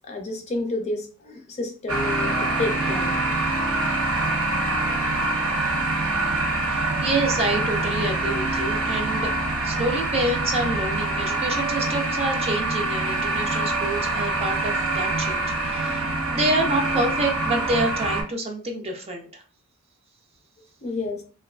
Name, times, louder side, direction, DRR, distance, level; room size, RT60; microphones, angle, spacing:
voice 1, 0.1-3.2 20.8-21.2, left 2 dB, 30° left, 2 dB, 0.5 m, -30 dB
sound 1, 1.9-18.2, right 2 dB, 75° right, 0.7 m, -25 dB
voice 2, 6.7-9.3 9.6-19.4, right 2 dB, 30° right, 2 dB, 0.4 m, -27 dB
2.9 x 2.2 x 2.3 m, 0.39 s
head